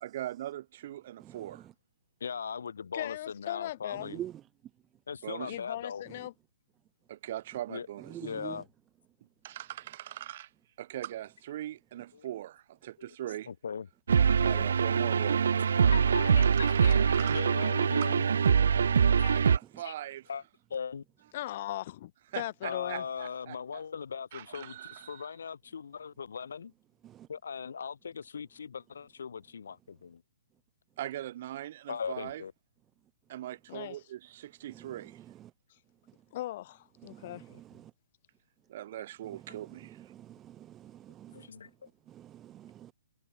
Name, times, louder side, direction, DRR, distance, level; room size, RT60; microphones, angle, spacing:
voice 1, 0.0-1.7 5.2-5.6 7.1-8.2 9.4-10.5 10.8-13.5 14.4-15.6 16.8-17.4 18.0-18.1 19.3-20.3 22.3-23.8 24.3-25.3 31.0-32.4 33.3-35.2 38.7-40.1, right 13 dB, 45° right, 1.3 m, -41 dB
voice 2, 2.2-4.2 5.1-6.0 7.7-7.9 8.2-8.7 12.1-12.3 13.0-13.1 13.5-13.9 15.9-18.3 19.2-19.4 19.8-19.9 20.3-20.4 20.7-21.0 22.6-26.7 27.3-30.2 31.9-32.5 37.5-37.6 41.3-41.9, left 6 dB, 80° left, 2.9 m, -39 dB
voice 3, 2.9-4.1 5.5-6.3 14.4-14.7 21.3-22.1 22.3-23.0 33.7-34.0 36.3-37.4, left 14 dB, 40° left, 0.9 m, -38 dB
voice 4, 8.1-8.6 27.0-27.3 37.1-37.4 40.1-41.5 42.1-42.9, right 12 dB, 15° right, 0.4 m, -44 dB
sound 1, 14.1-19.6, right 6 dB, 80° right, 0.4 m, -24 dB
hypercardioid pair, 160°, 0 cm